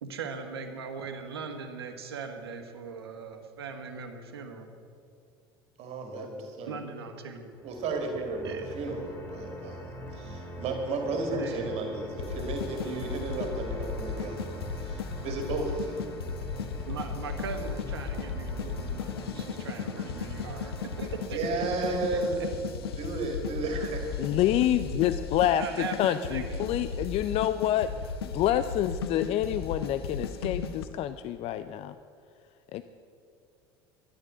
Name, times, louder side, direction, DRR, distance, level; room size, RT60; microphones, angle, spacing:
voice 1, 0.0-4.7 6.7-7.5 8.4-8.7 11.3-11.8 16.9-21.7 22.1-22.2 25.6-27.1, right 5 dB, 85° right, 6 dB, 1.5 m, -39 dB
voice 2, 5.8-6.8 7.6-16.0 21.3-22.4 22.9-24.3, right 3 dB, 55° right, 3 dB, 2.2 m, -33 dB
sound 1, 7.5-21.3, equal, 15° left, 3.1 m, -43 dB
sound 2, 12.2-30.9, left 5 dB, 80° left, 0.9 m, -36 dB
voice 3, 24.2-27.9 28.3-31.9 32.7-32.8, left 11 dB, 50° left, 12 dB, 0.5 m, -27 dB
13.0 x 9.8 x 8.2 m, 2.6 s
hypercardioid pair, 70°, 13 cm